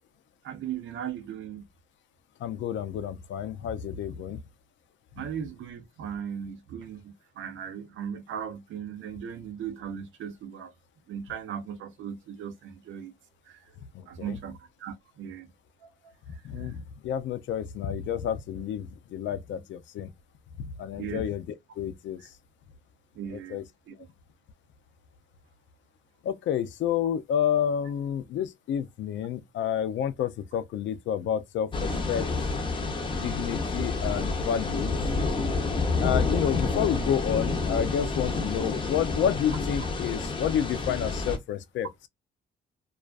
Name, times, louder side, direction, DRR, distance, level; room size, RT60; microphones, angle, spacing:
voice 1, 0.4-1.6 5.2-10.7 11.1-13.1 13.5-13.6 14.1-15.5 15.8-15.9 16.3-16.7 21.0-21.2 23.2-23.9, right 8 dB, 75° right, 0.6 m, -38 dB
voice 2, 2.4-4.4 13.9-14.4 16.3-20.1 20.6-21.5 21.8-22.2 23.3-23.6 26.2-32.3 33.2-34.9 36.0-41.9, left 9 dB, 70° left, 0.4 m, -30 dB
sound 1, 31.7-41.4, left 3 dB, 25° left, 0.6 m, -29 dB
2.4 x 2.3 x 2.3 m
cardioid pair, 90°, 20 cm